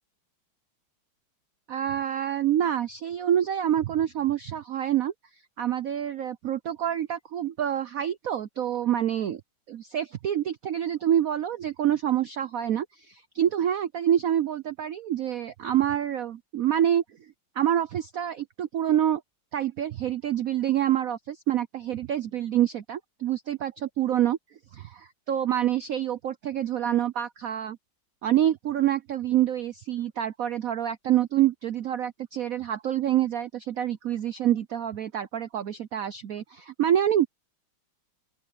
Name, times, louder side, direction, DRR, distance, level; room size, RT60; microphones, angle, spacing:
voice 1, 1.7-5.1 5.6-9.4 9.7-17.0 17.6-19.2 19.5-24.4 24.7-27.8 28.2-37.3, right 11 dB, 70° right, 0.8 m, -27 dB
open air
omnidirectional pair, 2.3 m